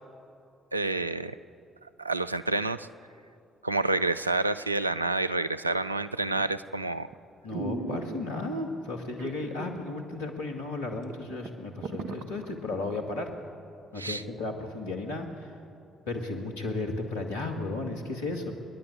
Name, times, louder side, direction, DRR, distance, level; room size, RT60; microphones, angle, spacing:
voice 1, 0.7-1.4 2.0-2.9 3.6-7.1 14.0-14.2, right 2 dB, 90° right, 12 dB, 0.4 m, -28 dB
sound 1, 6.3-6.7 7.1-7.2 7.5-8.6 9.2-9.9 10.2-10.3 10.8-10.9 11.1-13.0 13.4-13.5, right 3 dB, 60° right, 1.2 m, -37 dB
voice 2, 7.4-13.3 13.9-15.6 16.1-18.5, left 2 dB, 75° left, 2 dB, 2.0 m, -34 dB
28.5 x 11.0 x 8.4 m, 2.6 s
figure-of-eight pair, 45°, 0 cm